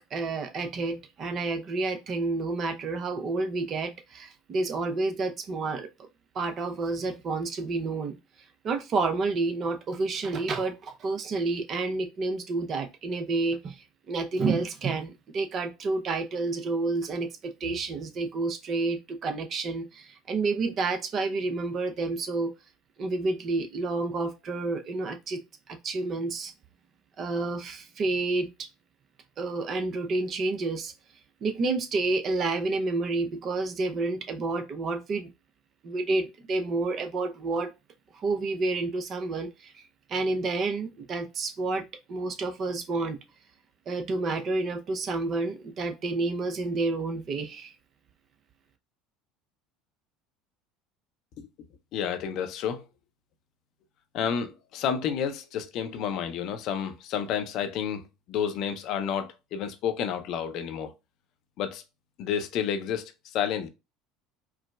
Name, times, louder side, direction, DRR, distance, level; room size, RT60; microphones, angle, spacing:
voice 1, 0.1-5.9 6.3-8.2 8.6-22.5 23.0-25.4 25.7-26.5 27.2-28.7 29.4-30.9 31.4-35.3 35.8-37.7 38.1-39.8 40.1-43.2 43.9-47.7, right 3 dB, 45° right, 0.7 m, -29 dB
voice 2, 51.9-52.8 54.1-58.0 58.3-60.9 61.6-61.8 62.2-63.7, left 8 dB, 55° left, 0.6 m, -30 dB
4.6 x 2.1 x 2.3 m
hypercardioid pair, 70°, 0 cm